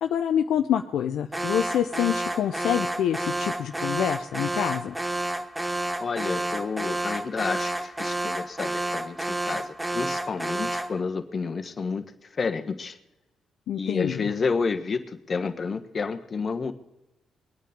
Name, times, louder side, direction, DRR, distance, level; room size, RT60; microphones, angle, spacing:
voice 1, 0.0-5.0 13.7-14.3, left 9 dB, 75° left, 6 dB, 0.6 m, -26 dB
Alarm, 1.3-11.0, right 1 dB, 10° right, 1.0 m, -30 dB
voice 2, 6.0-13.0 13.8-16.7, left 4 dB, 45° left, 8 dB, 1.4 m, -30 dB
21.5 x 9.2 x 5.2 m, 0.98 s
hypercardioid pair, 50°, 0 cm